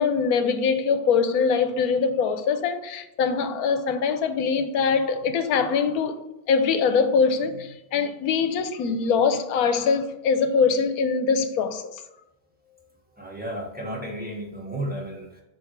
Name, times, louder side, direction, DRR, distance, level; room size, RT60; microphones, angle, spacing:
voice 1, 0.0-6.2 6.5-12.0, left 5 dB, 85° left, 1.1 m, -23 dB
voice 2, 13.2-15.4, right 1 dB, 5° right, 1.2 m, -33 dB
7.4 x 3.0 x 4.5 m
omnidirectional pair, 1.6 m